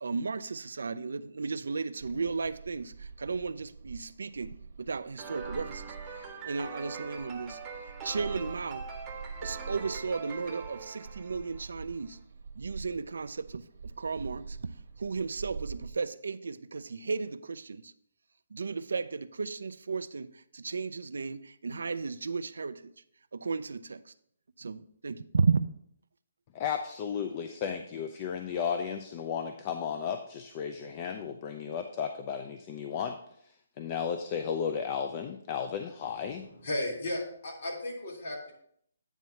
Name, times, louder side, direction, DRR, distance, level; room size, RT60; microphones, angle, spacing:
voice 1, 0.0-7.6 8.0-8.9 9.4-12.2 12.6-14.7 15.0-17.9 18.5-22.9 23.3-24.1 24.6-25.7, right 4 dB, 85° right, 0.4 m, -34 dB
sound 1, 2.0-15.9, right 5 dB, 65° right, 1.1 m, -45 dB
sound 2, 5.2-11.8, right 5 dB, 15° right, 0.8 m, -43 dB
voice 2, 26.5-33.2 33.8-36.5, left 7 dB, 30° left, 0.4 m, -34 dB
voice 3, 36.5-38.5, left 1 dB, 50° left, 3.0 m, -35 dB
9.0 x 3.1 x 5.7 m
hypercardioid pair, 165°, 0 cm